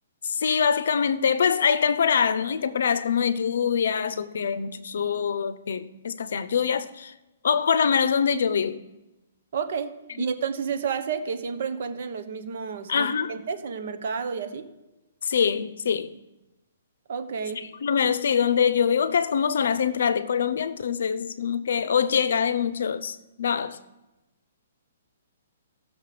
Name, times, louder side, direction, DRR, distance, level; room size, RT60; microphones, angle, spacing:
voice 1, 0.2-7.1 7.4-8.9 10.2-10.3 12.9-13.4 15.2-16.2 17.6-23.8, left 7 dB, 65° left, 0.6 m, -24 dB
voice 2, 9.5-14.7 17.1-17.6, right 6 dB, 50° right, 1.1 m, -31 dB
16.0 x 6.5 x 4.9 m
hypercardioid pair, 170°, 0 cm